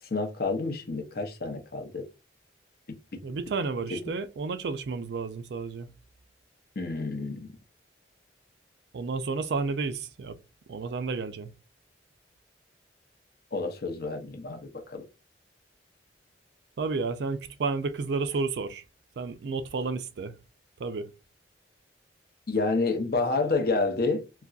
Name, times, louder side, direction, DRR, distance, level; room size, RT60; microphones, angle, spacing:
voice 1, 0.1-2.1 3.1-3.2 3.9-4.0 6.8-7.5 13.5-15.0 22.5-24.3, left 3 dB, 55° left, 0.7 m, -29 dB
voice 2, 3.2-5.9 8.9-10.4 10.7-11.5 16.8-18.8 19.2-20.3 20.8-21.1, right 4 dB, 65° right, 0.4 m, -31 dB
3.9 x 2.2 x 2.3 m
head